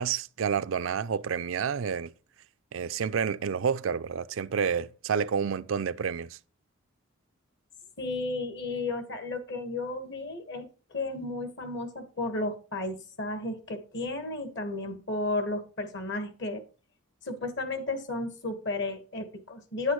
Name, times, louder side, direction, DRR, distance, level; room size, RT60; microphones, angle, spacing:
voice 1, 0.0-2.1 2.7-6.4, right 6 dB, 65° right, 0.4 m, -29 dB
voice 2, 8.0-16.6 17.2-19.9, left 2 dB, 60° left, 1.5 m, -33 dB
9.8 x 8.2 x 3.1 m
head